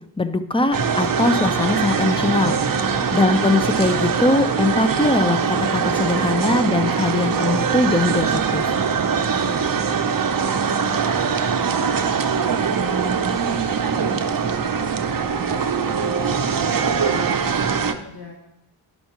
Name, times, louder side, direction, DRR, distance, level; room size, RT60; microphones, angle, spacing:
voice 1, 0.2-2.6 3.1-8.8, left 2 dB, 10° left, 9 dB, 0.5 m, -21 dB
sound 1, 0.6-6.0, left 5 dB, 85° left, 0.8 m, -42 dB
sound 2, 0.7-17.9, right 6 dB, 50° right, 0.6 m, -22 dB
voice 2, 9.1-10.8 11.1-12.0 12.3-13.0 13.3-18.4, left 1 dB, 60° left, -4 dB, 1.9 m, -42 dB
11.5 x 5.6 x 2.9 m, 0.86 s
wide cardioid pair, 55°, 45 cm